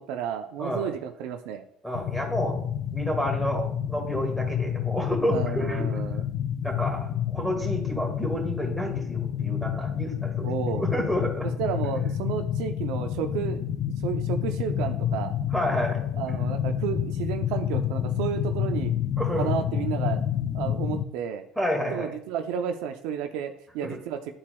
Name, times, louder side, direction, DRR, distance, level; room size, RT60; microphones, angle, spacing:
voice 1, 0.0-1.6 5.3-6.2 10.4-10.8 11.6-13.8 14.0-15.3 16.2-18.9 19.4-20.2 20.5-21.4 21.9-24.3, right 8 dB, 75° right, 6 dB, 0.5 m, -32 dB
voice 2, 1.8-2.6 2.9-6.0 6.6-10.5 10.8-11.5 15.5-16.0 19.2-19.5 21.6-22.1 23.8-23.9, equal, ahead, 1 dB, 1.9 m, -29 dB
sound 1, 1.9-21.0, left 9 dB, 50° left, 0.4 m, -29 dB
11.5 x 4.2 x 2.3 m, 0.71 s
supercardioid pair, 100°, 0 cm